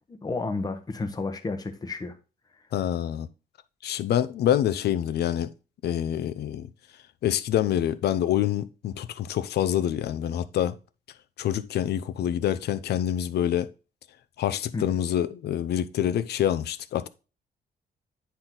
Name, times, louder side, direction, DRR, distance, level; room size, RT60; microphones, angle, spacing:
voice 1, 0.1-2.1 14.7-15.0, left 3 dB, 20° left, 1.0 m, -31 dB
voice 2, 2.7-3.3 3.8-5.5 5.8-6.7 7.2-10.8 11.4-13.7 14.4-17.1, left 11 dB, 75° left, 0.6 m, -26 dB
9.7 x 4.5 x 3.8 m
cardioid pair, 150°, 17 cm